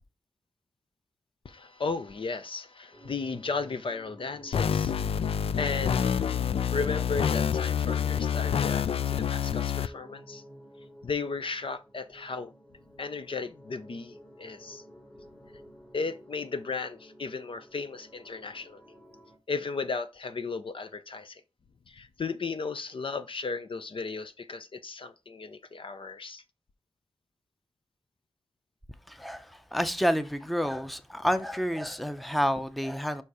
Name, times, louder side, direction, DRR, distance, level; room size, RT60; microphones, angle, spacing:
voice 1, 1.4-4.9 5.6-6.2 6.7-10.4 11.0-12.5 13.0-14.8 15.9-18.8 19.5-21.4 21.9-26.4, left 4 dB, 65° left, 0.8 m, -35 dB
sound 1, 2.9-19.4, equal, 20° left, 1.9 m, -51 dB
sound 2, 4.5-9.9, left 8 dB, 80° left, 0.4 m, -27 dB
voice 2, 29.1-33.2, equal, ahead, 0.6 m, -29 dB
5.5 x 4.5 x 4.8 m
wide cardioid pair, 85°, 10 cm